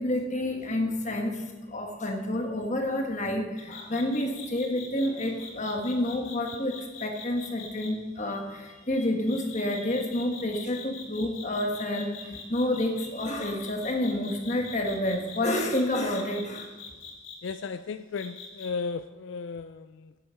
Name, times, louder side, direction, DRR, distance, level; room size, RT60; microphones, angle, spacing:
voice 1, 0.0-16.7, left 1 dB, 35° left, 3 dB, 1.4 m, -29 dB
sound 1, 3.6-7.9 9.3-17.5 18.2-18.7, left 6 dB, 90° left, 2.7 m, -43 dB
voice 2, 17.4-20.2, left 5 dB, 65° left, 10 dB, 0.4 m, -35 dB
11.5 x 9.1 x 5.5 m, 1.2 s
head